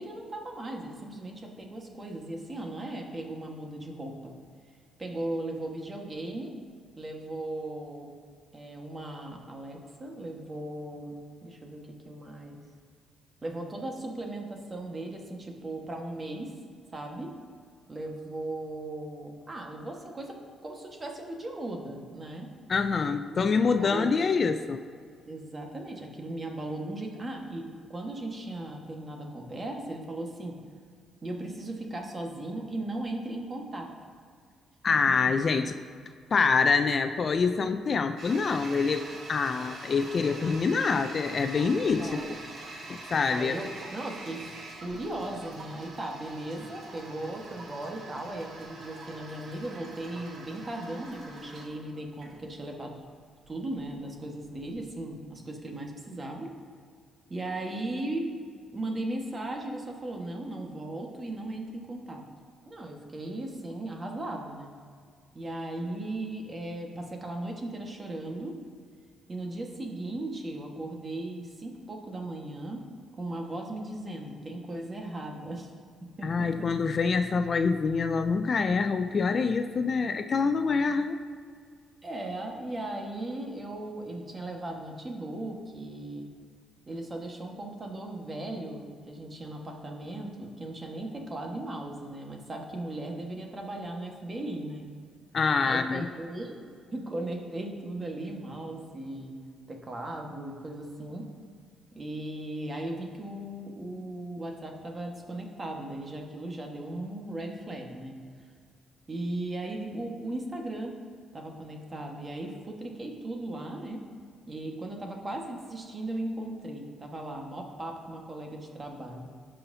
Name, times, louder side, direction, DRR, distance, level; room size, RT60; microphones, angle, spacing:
voice 1, 0.0-4.3 5.0-6.5 7.0-8.1 8.5-12.6 13.4-16.5 16.9-17.3 17.9-22.5 23.3-24.1 25.3-30.6 31.2-33.9 42.0-42.4 43.3-44.5 44.8-53.0 53.5-56.5 57.3-58.3 58.7-62.2 62.6-64.7 65.3-68.6 69.3-72.8 73.2-75.7 76.2-76.7 82.0-86.3 86.9-94.9 95.6-99.3 99.7-101.3 101.9-108.1 109.1-110.9 111.3-114.0 114.5-119.3, right 1 dB, 30° right, 1 dB, 1.4 m, -37 dB
voice 2, 22.7-24.8 34.8-35.7 36.3-42.3 42.9-43.6 76.2-81.2 95.3-96.1, left 5 dB, 45° left, 9 dB, 0.4 m, -26 dB
Toilet flush, 38.2-54.9, right 2 dB, 60° right, 1.6 m, -45 dB
16.0 x 5.7 x 2.7 m, 2.1 s
cardioid pair, 90°, 0 cm